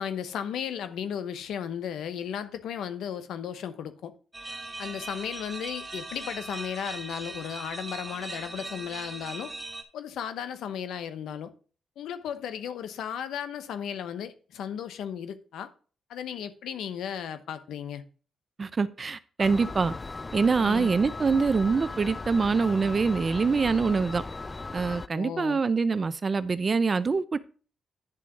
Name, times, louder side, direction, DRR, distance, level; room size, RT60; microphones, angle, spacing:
voice 1, 0.0-4.1 4.8-9.5 9.9-11.5 12.0-15.7 16.1-18.0 20.6-20.9 25.1-25.6, left 8 dB, 80° left, 0.8 m, -35 dB
sound 1, 4.3-9.8, right 2 dB, 20° right, 1.4 m, -39 dB
voice 2, 18.6-19.9 20.3-24.2 24.7-27.4, right 4 dB, 40° right, 0.6 m, -25 dB
sound 2, 19.4-25.1, left 3 dB, 25° left, 0.3 m, -38 dB
10.0 x 3.7 x 5.9 m
cardioid pair, 70°, 0 cm